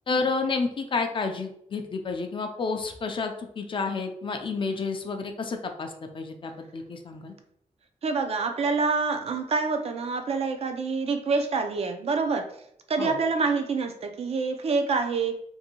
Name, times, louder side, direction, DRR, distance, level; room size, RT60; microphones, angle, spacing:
voice 1, 0.1-7.3 13.0-13.2, left 4 dB, 40° left, 5 dB, 0.4 m, -30 dB
voice 2, 8.0-12.5 12.9-15.4, right 4 dB, 55° right, 6 dB, 0.4 m, -26 dB
2.6 x 2.6 x 2.8 m, 0.73 s
wide cardioid pair, 125°, 13 cm